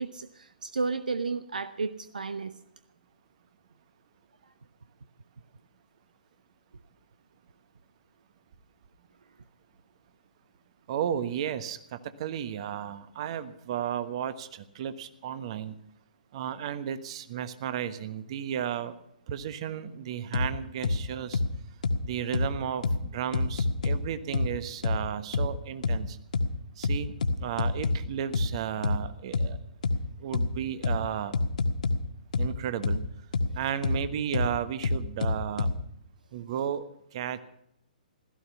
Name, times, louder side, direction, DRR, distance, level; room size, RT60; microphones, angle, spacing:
voice 1, 0.0-2.5, right 4 dB, 65° right, 11 dB, 0.9 m, -32 dB
voice 2, 10.9-15.7 16.3-18.9 19.3-21.4 22.0-26.2 26.8-29.6 30.2-31.3 32.4-33.0 33.5-35.7 36.3-36.8 37.1-37.4, right 9 dB, 40° right, 12 dB, 1.3 m, -33 dB
sound 1, 20.3-20.5 20.8-21.0 21.3-21.5 21.8-22.0 22.3-22.5 22.8-23.0 23.3-24.0 24.3-24.5 24.8-25.0 25.3-25.5 25.8-26.0 26.3-26.5 26.8-28.0 28.3-28.5 28.8-29.0 29.3-29.5 29.8-30.0 30.3-30.5 30.8-31.0 31.3-32.0 32.3-32.5 32.8-33.0 33.3-33.5 33.8-34.0 34.3-34.5 34.8-35.7, left 3 dB, 60° left, 1.6 m, -25 dB
16.5 x 14.0 x 5.7 m, 0.77 s
figure-of-eight pair, 120°, 5 cm